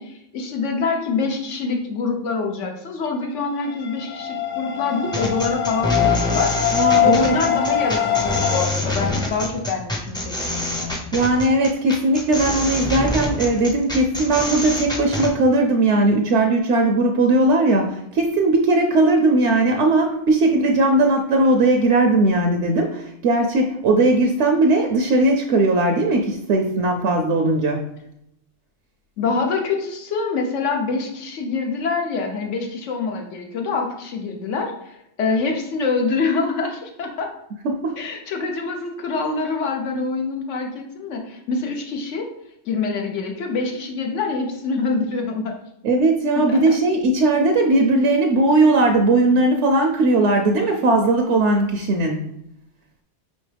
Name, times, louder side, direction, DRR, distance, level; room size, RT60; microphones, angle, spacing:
voice 1, 0.0-6.5 7.0-11.1 29.2-37.3 38.0-42.3 42.7-45.5 46.4-46.8, left 4 dB, 80° left, 2 dB, 1.1 m, -25 dB
sound 1, 3.6-8.7, left 10 dB, 65° left, 0.4 m, -22 dB
sound 2, 5.1-15.3, left 1 dB, 5° left, 0.5 m, -26 dB
voice 2, 6.7-7.3 11.1-27.8 37.6-38.0 45.8-52.2, right 2 dB, 75° right, 3 dB, 0.8 m, -18 dB
5.3 x 3.1 x 3.3 m, 0.78 s
omnidirectional pair, 1.2 m